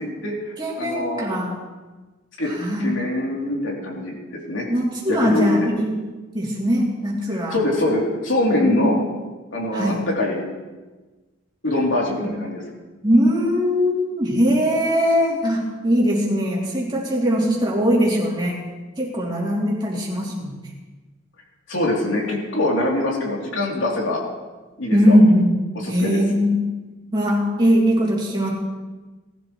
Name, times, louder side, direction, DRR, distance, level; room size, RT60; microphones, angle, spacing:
voice 1, 0.0-1.3 2.4-2.5 2.8-4.6 5.1-5.5 7.3-9.0 9.5-10.4 11.6-12.6 21.7-24.2 24.8-25.2 25.8-26.2, left 1 dB, 75° left, -2 dB, 3.2 m, -23 dB
voice 2, 0.6-1.6 2.5-2.9 4.7-5.9 6.3-7.6 8.6-8.9 9.7-10.0 12.2-12.3 13.0-18.6 19.0-20.6 24.9-25.5 25.9-26.7 27.1-28.5, equal, 25° right, -5 dB, 3.0 m, -20 dB
19.0 x 12.0 x 3.2 m, 1.2 s
head